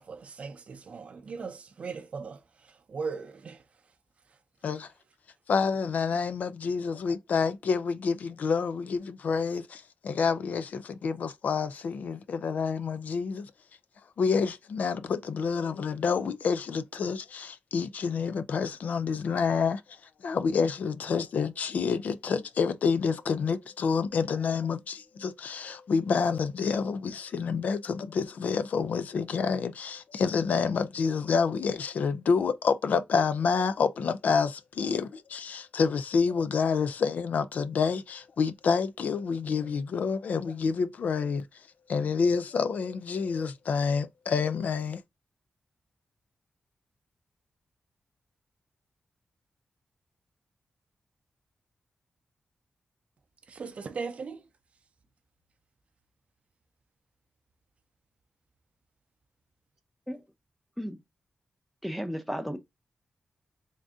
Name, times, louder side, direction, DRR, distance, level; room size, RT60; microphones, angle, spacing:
voice 1, 0.0-3.6 53.5-54.4, right 5 dB, 50° right, 0.6 m, -38 dB
voice 2, 5.5-13.5 14.2-20.0 20.2-41.4 41.9-45.0, left 5 dB, 70° left, 0.4 m, -28 dB
voice 3, 61.8-62.6, equal, ahead, 0.6 m, -34 dB
3.7 x 2.6 x 3.5 m
wide cardioid pair, 155°, 3 cm